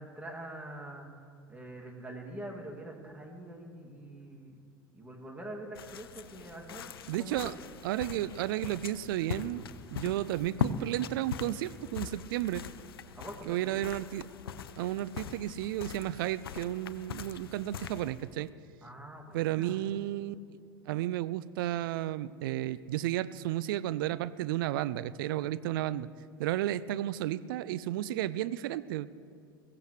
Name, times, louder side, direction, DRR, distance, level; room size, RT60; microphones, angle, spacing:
voice 1, 0.0-4.6 4.9-6.9 7.2-7.5 13.1-13.7 18.8-19.8, right 1 dB, 10° right, 0 dB, 2.4 m, -45 dB
sound 1, 5.7-18.5, left 8 dB, 75° left, 0.6 m, -41 dB
voice 2, 7.1-7.5 7.8-12.6 13.5-14.3 14.8-18.5 19.3-20.4 20.9-26.1 26.4-29.1, right 14 dB, 65° right, 16 dB, 0.5 m, -33 dB
22.5 x 15.5 x 3.2 m, 2.3 s
figure-of-eight pair, 70°, 12 cm